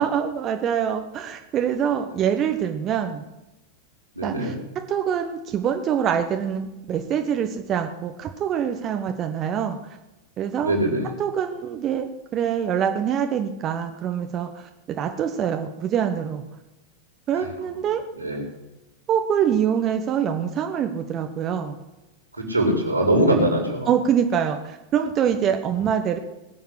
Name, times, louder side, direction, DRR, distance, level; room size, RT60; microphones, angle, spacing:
voice 1, 0.0-3.2 4.2-4.5 4.9-10.0 10.4-10.7 11.2-16.4 17.3-18.0 19.1-21.8 23.9-26.2, right 8 dB, 30° right, 5 dB, 1.2 m, -25 dB
voice 2, 4.2-4.6 10.6-11.1 17.3-17.5 18.2-18.4 22.4-23.9, right 1 dB, 85° right, 1 dB, 4.5 m, -22 dB
20.5 x 7.3 x 8.0 m, 0.99 s
figure-of-eight pair, 90°, 0 cm